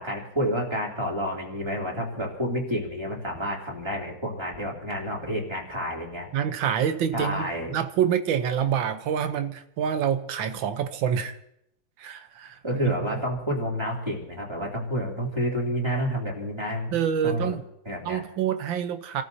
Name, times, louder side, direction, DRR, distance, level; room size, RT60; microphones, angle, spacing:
voice 1, 0.0-6.3 7.1-7.7 12.6-17.0 17.2-18.2, equal, 15° right, -3 dB, 3.0 m, -29 dB
voice 2, 6.3-11.4 12.0-12.9 16.9-17.6 18.0-19.2, right 8 dB, 80° right, 9 dB, 1.6 m, -27 dB
29.5 x 14.0 x 2.8 m, 0.78 s
omnidirectional pair, 2.1 m